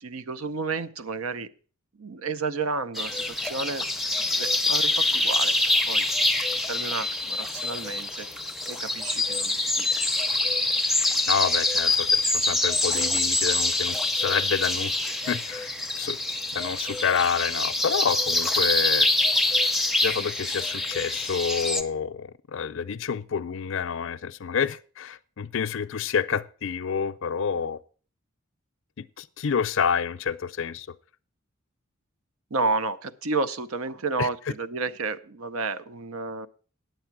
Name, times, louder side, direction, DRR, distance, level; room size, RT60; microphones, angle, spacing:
voice 1, 0.0-1.5 2.0-3.9 4.2-5.5 5.8-6.1 6.7-8.4 8.7-9.9 32.5-36.5, right 4 dB, 80° right, 0.7 m, -31 dB
sound 1, 3.0-21.8, left 2 dB, ahead, 0.6 m, -25 dB
voice 2, 11.3-15.0 15.3-16.2 16.5-19.1 20.0-27.8 29.0-30.9 34.2-34.3, left 6 dB, 60° left, 0.5 m, -28 dB
9.3 x 7.9 x 5.9 m
head